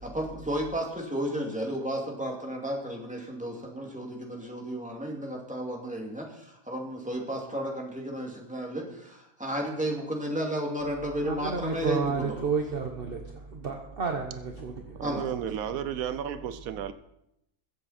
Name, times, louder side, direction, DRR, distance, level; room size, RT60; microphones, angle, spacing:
voice 1, 0.0-12.5 15.0-15.3, equal, 5° right, -1 dB, 2.4 m, -33 dB
voice 2, 11.2-15.0, right 5 dB, 45° right, 3 dB, 1.2 m, -31 dB
voice 3, 14.9-16.9, right 9 dB, 85° right, 12 dB, 1.1 m, -33 dB
22.0 x 7.7 x 4.3 m, 0.81 s
omnidirectional pair, 1.4 m